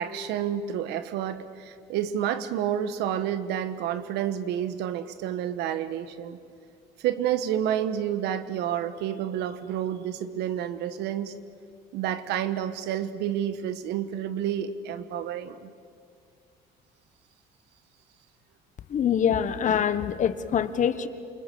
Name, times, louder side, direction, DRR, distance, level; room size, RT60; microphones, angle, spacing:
voice 1, 0.0-6.4 7.0-11.3 11.9-15.7, right 10 dB, 85° right, 12 dB, 1.2 m, -29 dB
voice 2, 18.9-21.1, left 8 dB, 50° left, 12 dB, 1.3 m, -24 dB
29.0 x 21.0 x 7.0 m, 2.2 s
cardioid pair, 110°, 17 cm